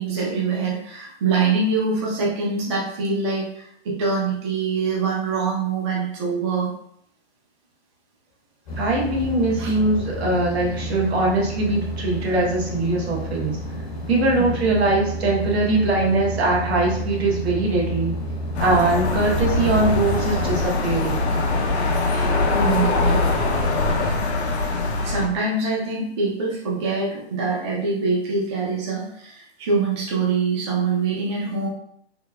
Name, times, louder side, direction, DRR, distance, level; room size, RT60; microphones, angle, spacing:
voice 1, 0.0-6.7 9.6-9.7 14.3-14.4 22.0-23.2 25.0-31.7, right 4 dB, 30° right, -3 dB, 0.4 m, -24 dB
sound 1, 8.7-20.7, right 1 dB, 35° left, 0.6 m, -31 dB
voice 2, 8.8-13.6 14.1-18.2 18.6-21.2, right 2 dB, 75° right, -2 dB, 1.0 m, -21 dB
sound 2, 18.5-25.3, left 2 dB, 85° left, 0.6 m, -22 dB
3.2 x 2.0 x 2.2 m, 0.69 s
hypercardioid pair, 150°, 32 cm